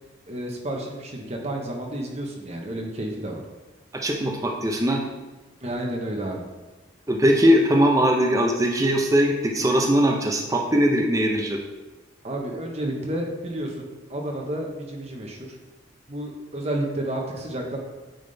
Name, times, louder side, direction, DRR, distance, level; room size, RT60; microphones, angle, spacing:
voice 1, 0.3-3.4 5.6-6.5 12.2-15.5 16.1-17.8, right 1 dB, 35° right, 1 dB, 0.9 m, -31 dB
voice 2, 3.9-5.0 7.1-11.6, equal, 15° right, 0 dB, 0.6 m, -20 dB
8.9 x 3.6 x 3.9 m, 1.2 s
head